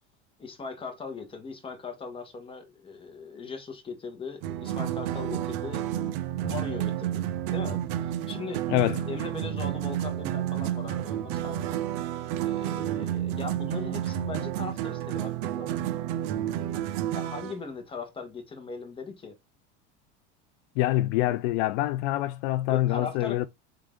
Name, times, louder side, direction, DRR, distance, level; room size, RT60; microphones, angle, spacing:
voice 1, 0.4-5.9 6.3-7.2 7.5-8.6 9.1-11.8 12.4-15.8 17.1-19.4 22.7-23.4, left 4 dB, 15° left, 1.2 m, -39 dB
sound 1, 4.4-17.6, right 12 dB, 65° right, 0.7 m, -30 dB
voice 2, 8.7-9.0 20.8-23.5, left 15 dB, 70° left, 0.5 m, -25 dB
3.8 x 3.8 x 3.5 m
cardioid pair, 155°, 34 cm